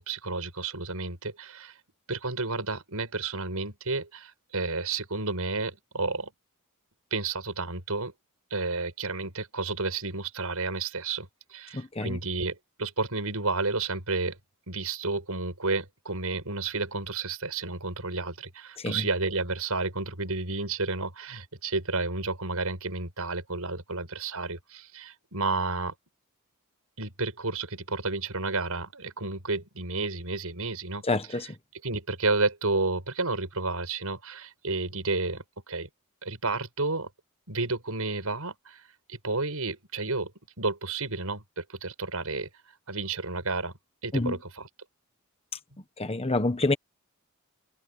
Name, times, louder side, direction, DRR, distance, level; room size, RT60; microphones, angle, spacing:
voice 1, 0.0-1.8 2.1-6.3 7.1-8.1 8.5-14.4 14.7-25.9 27.0-31.0 31.3-31.4 31.8-35.9 36.2-37.1 37.5-38.8 39.1-40.3 40.6-42.5 42.9-43.7 44.0-44.7, right 3 dB, 75° right, 6.6 m, -31 dB
voice 2, 11.7-12.2 18.8-19.1 31.1-31.5 44.1-44.4 46.0-46.7, left 2 dB, 25° left, 1.3 m, -27 dB
head